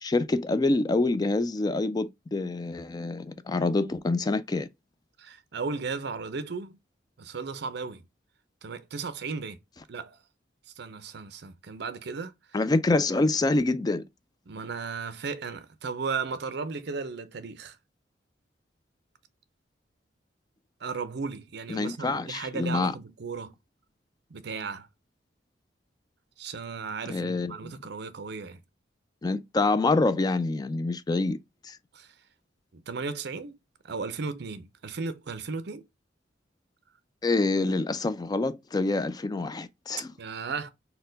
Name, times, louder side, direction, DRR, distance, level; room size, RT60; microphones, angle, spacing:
voice 1, 0.0-4.7 12.5-14.0 21.7-22.9 27.1-27.7 29.2-31.4 31.6-31.8 37.2-40.1, left 2 dB, 20° left, 0.3 m, -26 dB
voice 2, 5.2-6.8 7.2-8.1 8.6-9.6 9.9-10.2 10.8-12.3 14.5-17.8 20.8-23.5 24.3-24.9 26.4-28.6 31.9-32.1 32.7-33.6 33.8-35.9 40.2-40.7, right 4 dB, 65° right, 0.6 m, -35 dB
4.3 x 2.2 x 3.8 m
head